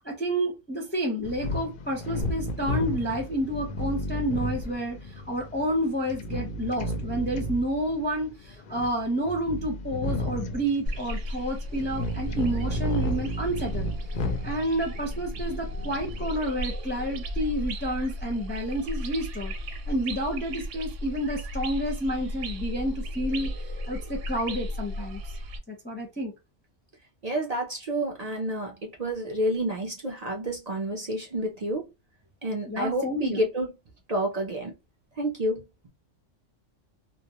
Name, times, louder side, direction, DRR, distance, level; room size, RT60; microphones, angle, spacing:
voice 1, 0.0-5.0 5.3-13.9 14.4-19.5 19.9-23.5 23.9-25.2 25.7-26.3 29.3-29.4 32.7-33.4, right 1 dB, 15° left, 0.4 m, -29 dB
sound 1, 1.2-16.3, left 1 dB, 60° left, 0.5 m, -33 dB
sound 2, 10.9-25.6, equal, 80° right, 1.0 m, -35 dB
voice 2, 27.2-31.9 32.4-33.7 34.1-34.7 35.2-35.6, right 1 dB, 50° right, 0.4 m, -29 dB
2.3 x 2.1 x 2.7 m
omnidirectional pair, 1.3 m